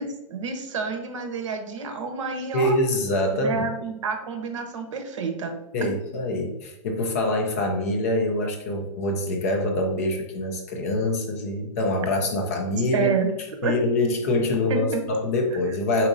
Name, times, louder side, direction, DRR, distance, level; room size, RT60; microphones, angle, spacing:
voice 1, 0.0-2.7 3.3-5.5 5.8-5.9 12.9-13.3 13.6-13.8 14.7-15.0, right 5 dB, 65° right, 6 dB, 0.9 m, -29 dB
voice 2, 2.5-3.7 5.7-13.1 13.6-16.1, left 1 dB, 30° left, 3 dB, 0.5 m, -25 dB
4.7 x 4.1 x 2.6 m, 0.95 s
hypercardioid pair, 180°, 17 cm